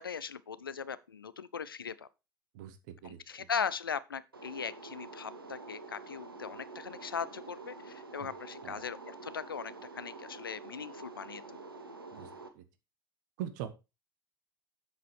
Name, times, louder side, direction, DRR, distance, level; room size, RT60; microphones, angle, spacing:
voice 1, 0.0-2.1 3.0-11.6, left 6 dB, 80° left, 0.5 m, -39 dB
voice 2, 2.5-3.5 8.6-8.9 12.1-12.3 12.5-12.6 13.4-13.7, right 10 dB, 60° right, 1.3 m, -42 dB
sound 1, 4.3-12.5, right 3 dB, 85° right, 1.2 m, -48 dB
8.0 x 6.7 x 4.7 m
figure-of-eight pair, 70°, 12 cm